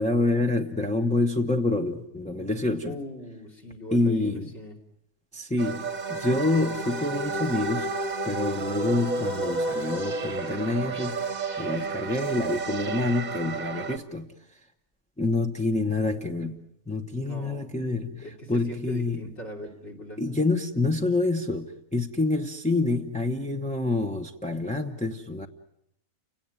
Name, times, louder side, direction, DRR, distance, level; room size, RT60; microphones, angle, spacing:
voice 1, 0.0-3.0 3.9-4.5 5.3-7.9 8.2-14.6 15.2-19.2 20.2-25.5, left 2 dB, 5° left, 0.8 m, -27 dB
voice 2, 2.8-4.8 17.2-17.7 18.2-20.2, left 1 dB, 45° left, 3.3 m, -40 dB
sound 1, 5.6-14.0, right 3 dB, 30° right, 1.2 m, -31 dB
29.5 x 18.0 x 9.1 m
omnidirectional pair, 1.6 m